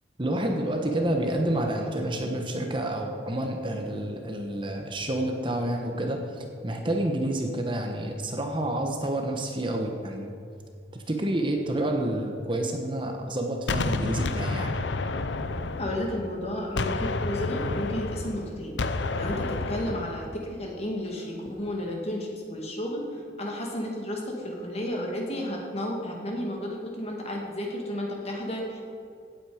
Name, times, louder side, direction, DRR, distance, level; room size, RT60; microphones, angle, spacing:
voice 1, 0.2-10.4 10.9-14.8, right 1 dB, 30° right, 3 dB, 1.1 m, -29 dB
Gunshot gunfire, 13.7-16.4 16.8-20.3, left 3 dB, 90° left, 0.7 m, -30 dB
voice 2, 15.8-18.8 19.2-28.8, left 1 dB, 35° left, -1 dB, 2.2 m, -32 dB
16.5 x 8.8 x 5.0 m, 2.4 s
head